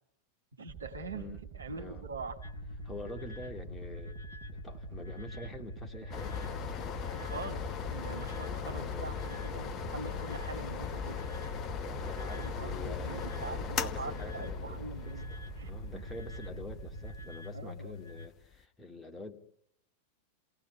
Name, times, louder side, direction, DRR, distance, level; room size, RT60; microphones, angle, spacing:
voice 1, 0.6-2.4 7.1-11.2 12.3-16.0 17.5-17.9, right 3 dB, 70° right, 5 dB, 2.1 m, -44 dB
sound 1, 0.7-17.3, right 9 dB, 40° right, 1.9 m, -47 dB
voice 2, 1.1-1.5 1.7-2.1 2.8-4.2 4.5-6.3 8.3-9.1 11.7-14.9 15.3-19.4, left 2 dB, 10° left, 2 dB, 2.5 m, -46 dB
sound 2, 2.4-18.3, left 3 dB, 75° left, 1.8 m, -46 dB
sound 3, 6.1-18.5, left 6 dB, 30° left, 1.3 m, -39 dB
28.5 x 18.0 x 9.6 m, 0.80 s
figure-of-eight pair, 90°, 0 cm